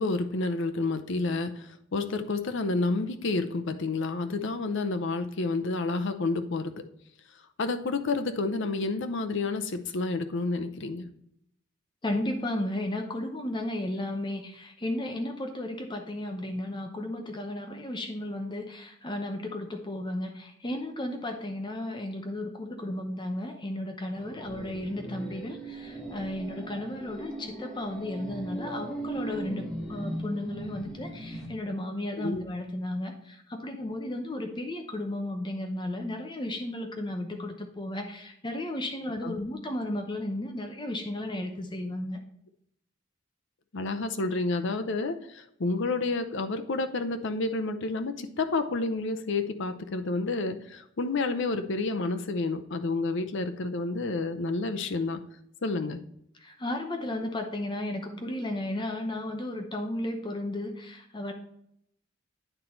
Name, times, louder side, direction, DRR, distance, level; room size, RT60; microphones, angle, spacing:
voice 1, 0.0-6.7 7.6-11.1 32.2-32.4 39.2-39.3 43.7-55.2 55.6-56.0, left 3 dB, 65° left, 8 dB, 0.7 m, -30 dB
voice 2, 12.0-42.2 56.4-61.3, left 1 dB, 25° left, 4 dB, 0.8 m, -34 dB
sound 1, 24.1-31.5, right 1 dB, 5° left, 1.3 m, -38 dB
9.0 x 3.9 x 4.3 m, 0.74 s
head